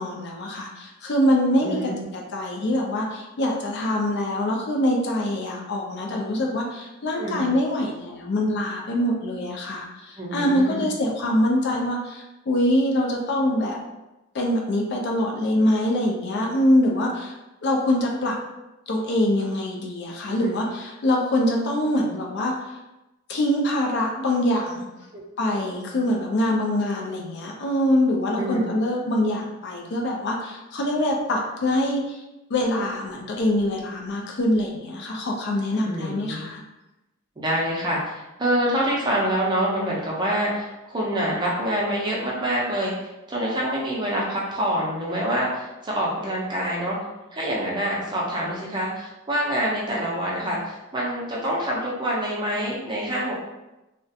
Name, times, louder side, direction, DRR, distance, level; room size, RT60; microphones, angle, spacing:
voice 1, 0.0-13.8 14.3-17.3 17.6-18.4 18.9-22.5 23.3-24.9 25.4-32.2 32.5-36.6, left 1 dB, 55° left, 0 dB, 0.4 m, -24 dB
voice 2, 1.6-2.0 7.1-7.5 10.2-10.9 20.3-20.5 25.1-25.2 28.4-28.7 35.9-36.5 37.4-47.0 47.3-53.4, equal, 20° right, -4 dB, 0.5 m, -26 dB
2.3 x 2.1 x 2.6 m, 0.98 s
head